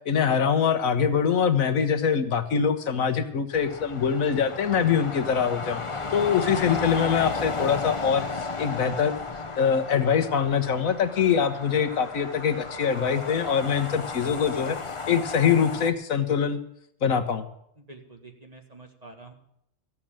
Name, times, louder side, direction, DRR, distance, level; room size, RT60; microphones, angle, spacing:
voice 1, 0.1-5.8 6.1-9.1 9.6-14.8 15.1-16.6 17.0-17.5, left 7 dB, 80° left, 8 dB, 1.4 m, -24 dB
sound 1, 3.5-15.9, left 4 dB, 30° left, 0.8 m, -34 dB
voice 2, 17.8-19.3, right 3 dB, 30° right, 2 dB, 1.9 m, -47 dB
15.0 x 7.5 x 8.9 m, 0.72 s
omnidirectional pair, 1.4 m